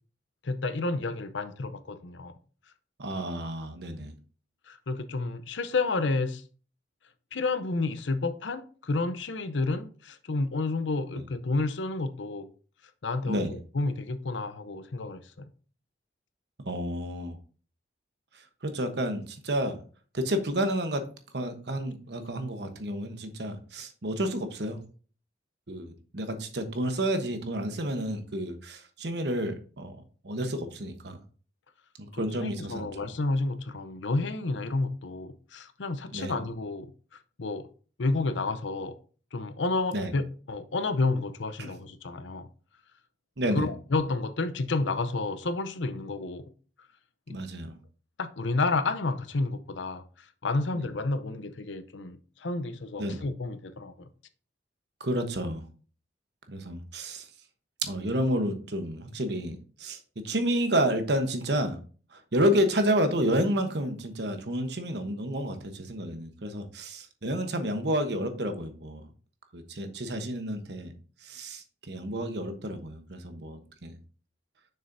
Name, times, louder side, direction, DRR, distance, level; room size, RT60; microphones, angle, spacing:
voice 1, 0.4-2.3 4.7-6.4 7.3-12.5 13.0-15.4 32.1-36.9 37.4-37.7 38.0-39.0 39.3-42.5 43.5-46.5 47.3-47.4 48.2-54.1, left 3 dB, 85° left, 0.7 m, -30 dB
voice 2, 3.0-4.1 11.1-11.2 13.3-13.5 16.6-17.4 18.3-19.8 20.1-21.0 21.3-24.8 25.7-30.0 30.2-31.2 32.0-32.9 36.1-36.3 39.9-40.1 41.6-41.7 43.4-43.7 47.3-47.8 50.7-50.8 53.0-53.2 55.0-55.7 56.5-57.3 57.8-61.8 62.1-69.0 69.5-70.9 71.2-74.0, equal, 65° right, 1.0 m, -30 dB
6.8 x 6.4 x 2.7 m
head